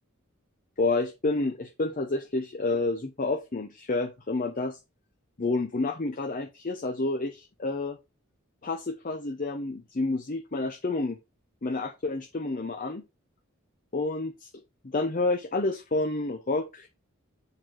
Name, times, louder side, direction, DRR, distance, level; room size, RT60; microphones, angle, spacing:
voice 1, 0.8-4.8 5.4-8.0 8.6-11.2 11.6-13.0 13.9-14.5 14.8-16.9, left 3 dB, 40° left, 0.7 m, -29 dB
6.8 x 4.6 x 3.8 m
head